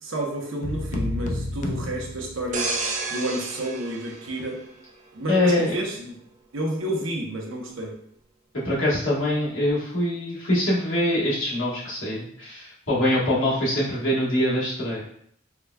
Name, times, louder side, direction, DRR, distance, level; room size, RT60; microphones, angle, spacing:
voice 1, 0.0-2.7 3.1-4.6 5.1-6.2 6.5-7.9, right 1 dB, 75° right, 0 dB, 0.8 m, -30 dB
sound 1, 0.6-2.9, left 2 dB, 40° left, 0.3 m, -31 dB
sound 2, 2.5-5.2 5.7-5.9, right 3 dB, 40° right, 0.4 m, -31 dB
voice 2, 5.3-5.8 8.6-15.0, left 1 dB, 75° left, -7 dB, 1.3 m, -24 dB
4.7 x 2.2 x 2.3 m, 0.67 s
head